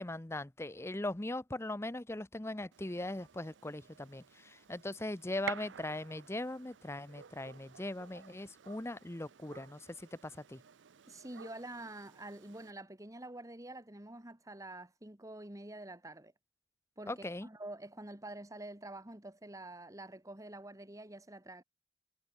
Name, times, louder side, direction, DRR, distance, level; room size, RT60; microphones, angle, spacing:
voice 1, 0.0-10.6 17.1-17.5, left 1 dB, 15° left, 0.7 m, -40 dB
Gunshot gunfire, 2.7-12.7, right 7 dB, 85° right, 0.6 m, -51 dB
voice 2, 11.1-16.3 17.0-21.6, right 1 dB, 20° right, 1.8 m, -47 dB
head